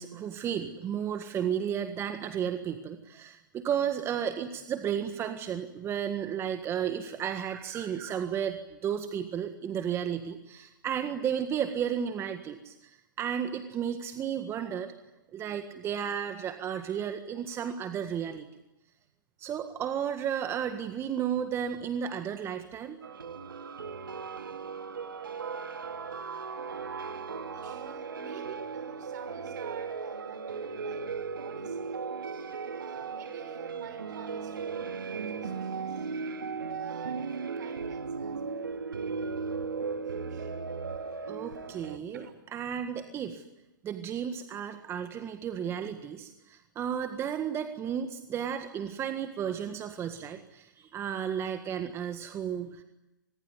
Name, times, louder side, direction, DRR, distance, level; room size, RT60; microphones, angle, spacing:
voice 1, 0.0-14.9 15.3-18.5 19.4-23.0 41.3-42.2 42.5-43.4 43.8-52.8, right 8 dB, 25° right, 1.7 m, -33 dB
voice 2, 8.1-8.5 14.6-14.8 17.3-17.4 27.5-32.0 32.8-36.2 36.8-38.6 40.0-40.5 42.1-42.3, right 6 dB, 60° right, 6.1 m, -48 dB
sound 1, 23.0-42.0, right 5 dB, 85° right, 2.2 m, -37 dB
26.0 x 21.0 x 9.7 m
hypercardioid pair, 120°, 11 cm